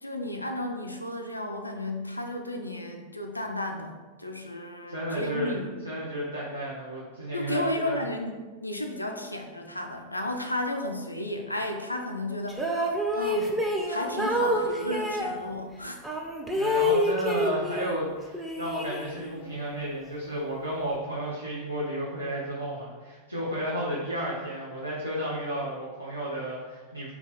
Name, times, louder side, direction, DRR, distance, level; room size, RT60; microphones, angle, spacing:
voice 1, 0.0-5.8 7.3-8.3 8.6-13.6 13.9-16.0, left 1 dB, 85° left, 3 dB, 0.3 m, -33 dB
voice 2, 4.9-5.6 5.8-8.0 16.5-27.1, equal, 90° right, -7 dB, 0.6 m, -32 dB
sound 1, 12.5-15.4 16.0-18.0 18.3-19.4, equal, 5° right, 0.4 m, -28 dB
2.9 x 2.2 x 3.9 m, 1.3 s
figure-of-eight pair, 90°, 0 cm